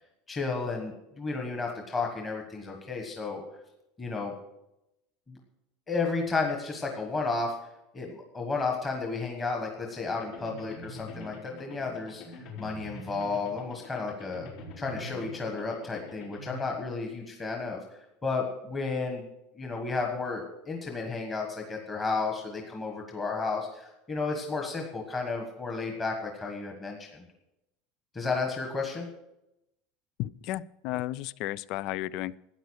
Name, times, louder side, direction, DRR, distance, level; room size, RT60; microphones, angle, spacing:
voice 1, 0.3-3.4 4.0-4.3 5.3-5.4 5.9-7.6 7.9-12.2 12.6-14.5 14.8-17.8 18.2-19.3 19.6-27.3 28.1-29.1, left 4 dB, 15° left, 1 dB, 1.4 m, -32 dB
sound 1, 10.0-16.6, left 2 dB, 65° left, 4.3 m, -45 dB
voice 2, 30.2-32.3, left 15 dB, 45° left, 21 dB, 0.4 m, -33 dB
13.5 x 9.3 x 6.4 m, 0.88 s
cardioid pair, 175°, 0 cm